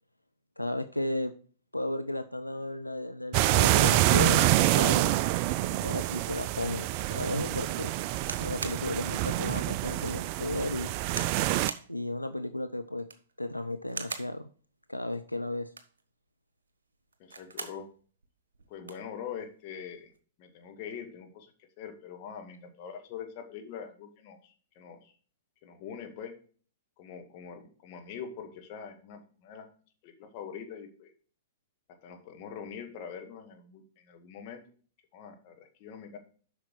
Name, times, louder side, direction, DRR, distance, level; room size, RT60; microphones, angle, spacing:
voice 1, 0.6-1.3 1.7-5.3 5.7-11.0 11.9-13.1 13.4-14.4 14.9-15.7, left 1 dB, 90° left, 10 dB, 0.5 m, -34 dB
sound 1, 3.3-11.7, right 15 dB, 40° right, 0.3 m, -26 dB
sound 2, 8.2-8.8 9.4-9.5 10.0-10.2 11.1-11.4 11.7-11.9 12.9-13.3 13.9-14.3 15.6-16.0 17.1-17.8 18.2-18.3 18.5-19.1 19.9-20.2, right 4 dB, 70° right, 1.1 m, -40 dB
voice 2, 17.2-17.9 18.7-20.1 20.4-21.5 21.8-25.1 25.6-26.3 27.0-29.7 30.0-31.1 32.0-34.6 35.1-36.2, left 7 dB, 40° left, 3 dB, 1.8 m, -43 dB
8.2 x 5.8 x 4.7 m, 0.42 s
figure-of-eight pair, 105°, 0 cm